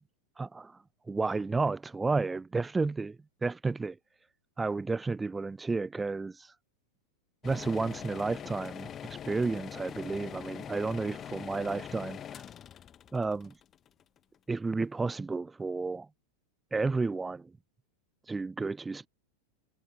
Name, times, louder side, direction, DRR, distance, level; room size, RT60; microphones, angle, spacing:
voice 1, 0.4-0.8 1.1-4.0 4.6-6.5 7.4-12.4 13.1-13.5 14.5-16.1 16.7-17.5 18.3-19.1, right 3 dB, 10° right, 3.8 m, -32 dB
sound 1, 7.4-14.4, left 9 dB, 25° left, 1.6 m, -43 dB
figure-of-eight pair, 90°, 0 cm